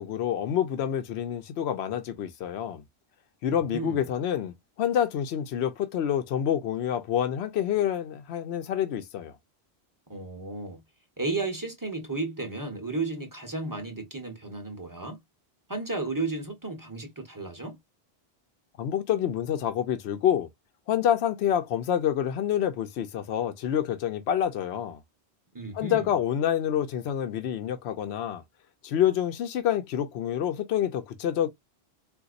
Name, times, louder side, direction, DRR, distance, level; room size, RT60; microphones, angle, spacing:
voice 1, 0.0-2.8 3.4-9.3 18.8-20.5 20.9-25.0 25.7-28.4 28.8-31.5, left 10 dB, 80° left, 0.9 m, -27 dB
voice 2, 3.4-4.1 10.1-10.8 11.2-15.2 15.7-17.8 25.5-26.1, right 3 dB, 20° right, 0.9 m, -33 dB
3.9 x 2.5 x 2.4 m
omnidirectional pair, 1.1 m